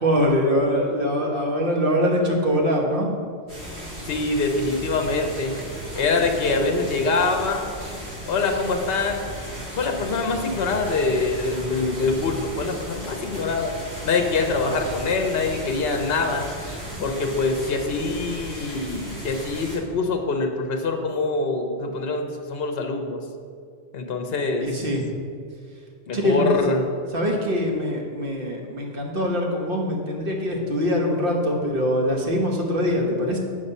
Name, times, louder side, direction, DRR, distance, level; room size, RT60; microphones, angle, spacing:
voice 1, 0.0-3.1 24.6-25.0 26.1-26.6 27.1-33.4, equal, 55° right, 0 dB, 1.3 m, -23 dB
sound 1, 3.5-19.8, equal, 75° right, 2.5 m, -35 dB
voice 2, 4.1-5.6 6.0-7.6 8.3-9.2 9.8-13.7 14.0-16.5 17.0-23.2 23.9-24.7 26.1-26.8, left 3 dB, 65° left, 4 dB, 1.0 m, -24 dB
8.7 x 5.3 x 5.4 m, 2.2 s
omnidirectional pair, 1.1 m